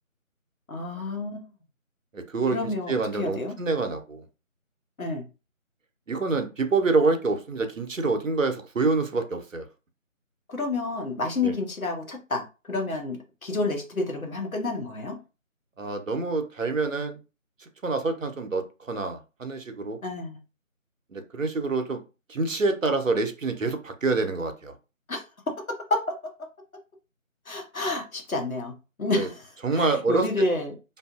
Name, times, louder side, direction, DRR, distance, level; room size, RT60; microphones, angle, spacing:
voice 1, 0.7-1.5 2.5-3.5 5.0-5.2 10.5-15.2 20.0-20.4 25.1-25.2 25.6-26.5 27.5-28.7 29.0-29.5 29.7-30.8, left 2 dB, 80° left, 1.1 m, -29 dB
voice 2, 2.1-4.2 6.1-9.7 11.4-11.5 15.8-17.2 17.6-20.0 21.1-22.0 22.3-24.8 29.1-29.3 29.6-30.3, right 3 dB, 70° right, 0.7 m, -27 dB
2.6 x 2.5 x 2.4 m
figure-of-eight pair, 165°, 41 cm